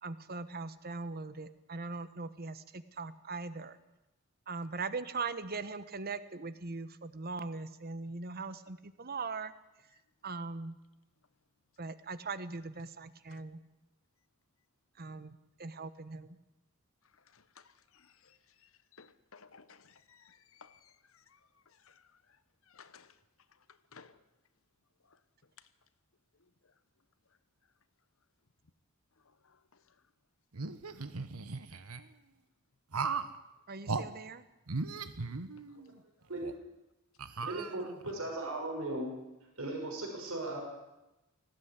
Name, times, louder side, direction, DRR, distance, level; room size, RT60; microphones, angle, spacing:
voice 1, 0.0-3.8 4.5-9.5 10.2-10.7 11.8-13.6 15.0-16.4 33.7-34.4, right 4 dB, 45° right, 1.1 m, -40 dB
voice 2, 17.3-21.4 21.7-22.2 22.7-23.2 23.7-24.2 25.1-25.2 29.4-29.8 35.6-35.8, left 5 dB, 65° left, 1.1 m, -59 dB
sound 1, 30.5-32.0 32.9-33.4 33.9-34.1 34.7-35.9 36.4-36.5 37.2-38.1, right 4 dB, 90° right, 1.2 m, -37 dB
voice 3, 37.4-39.2 39.6-40.6, right 2 dB, 70° right, 6.1 m, -37 dB
19.0 x 15.5 x 9.7 m
head